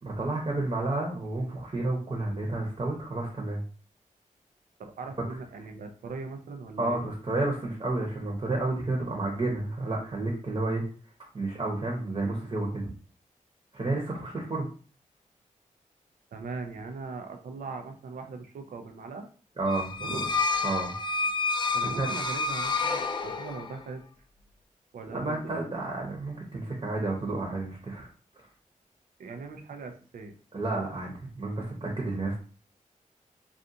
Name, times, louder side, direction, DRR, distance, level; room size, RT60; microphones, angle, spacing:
voice 1, 0.0-3.6 6.8-10.8 11.3-12.9 13.7-14.7 19.6-20.3 20.6-20.9 21.8-22.1 25.1-28.1 30.5-32.4, right 2 dB, 35° right, -1 dB, 0.9 m, -31 dB
voice 2, 4.8-7.0 16.3-19.3 20.0-20.4 21.7-24.0 24.9-25.7 29.2-30.4, right 4 dB, 80° right, 5 dB, 0.4 m, -40 dB
sound 1, 19.7-23.8, left 4 dB, 35° left, 0.3 m, -29 dB
2.5 x 2.4 x 2.7 m, 0.40 s
cardioid pair, 50°, 14 cm